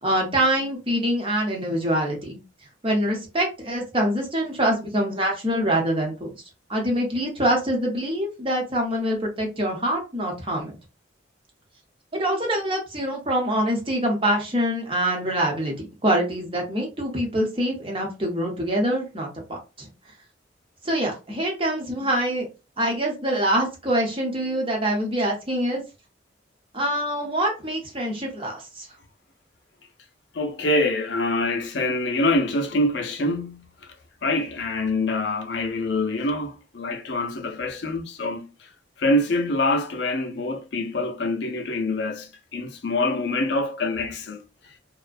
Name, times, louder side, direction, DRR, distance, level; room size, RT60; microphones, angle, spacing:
voice 1, 0.0-2.4 2.8-6.3 6.7-10.7 12.1-19.9 20.8-22.5 22.8-25.8 26.7-28.9, right 1 dB, 30° right, 0.8 m, -25 dB
voice 2, 30.3-33.9 34.2-38.7 39.0-44.7, left 2 dB, 60° left, 0.5 m, -25 dB
2.4 x 2.1 x 2.5 m
head